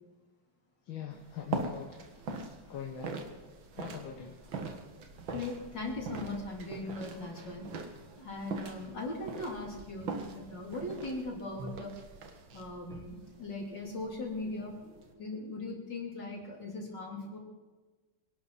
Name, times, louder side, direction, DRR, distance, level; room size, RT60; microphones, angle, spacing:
voice 1, 0.9-2.1 2.6-3.3 3.8-4.4, left 8 dB, 90° left, 2 dB, 2.1 m, -42 dB
sound 1, 1.1-15.1, right 4 dB, 90° right, 2.3 m, -42 dB
voice 2, 5.3-7.7 8.2-11.9 12.5-14.8 15.1-17.4, left 2 dB, 65° left, -1 dB, 4.3 m, -39 dB
25.0 x 11.5 x 4.2 m, 1.3 s
omnidirectional pair, 2.1 m